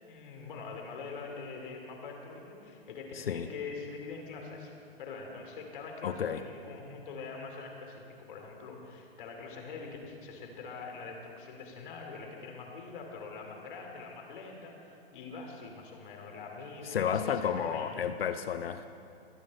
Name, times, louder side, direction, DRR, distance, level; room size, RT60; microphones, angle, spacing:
voice 1, 0.1-4.7 5.0-18.0, left 4 dB, 55° left, 1 dB, 3.0 m, -44 dB
voice 2, 3.1-3.5 6.0-6.4 16.9-18.9, left 8 dB, 70° left, 10 dB, 0.7 m, -32 dB
24.0 x 8.7 x 4.3 m, 2.6 s
hypercardioid pair, 125°, 31 cm